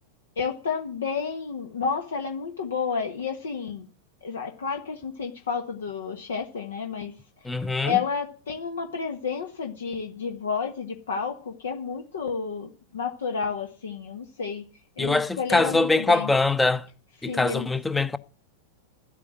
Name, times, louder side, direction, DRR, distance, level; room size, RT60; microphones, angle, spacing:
voice 1, 0.4-3.9 4.2-7.1 7.5-14.6 15.0-16.3 17.2-17.7, left 6 dB, 65° left, 1.4 m, -31 dB
voice 2, 7.4-8.0 15.0-16.9 17.2-18.2, left 3 dB, 10° left, 0.8 m, -23 dB
12.0 x 8.4 x 8.8 m
figure-of-eight pair, 90°, 0 cm